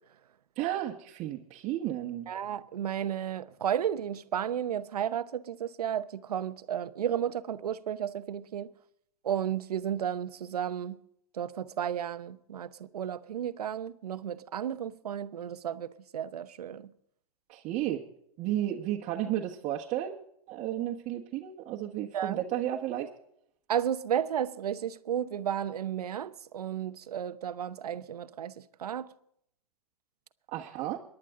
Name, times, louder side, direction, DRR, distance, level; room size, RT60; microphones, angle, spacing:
voice 1, 0.6-2.3 17.5-18.0 18.4-20.2 20.5-23.1 30.5-31.0, right 12 dB, 40° right, 1.4 m, -33 dB
voice 2, 2.3-8.7 9.2-11.0 11.3-16.9 22.1-22.4 23.7-28.5 28.8-29.1, right 9 dB, 85° right, 0.9 m, -33 dB
23.5 x 11.0 x 3.7 m
hypercardioid pair, 115°, 19 cm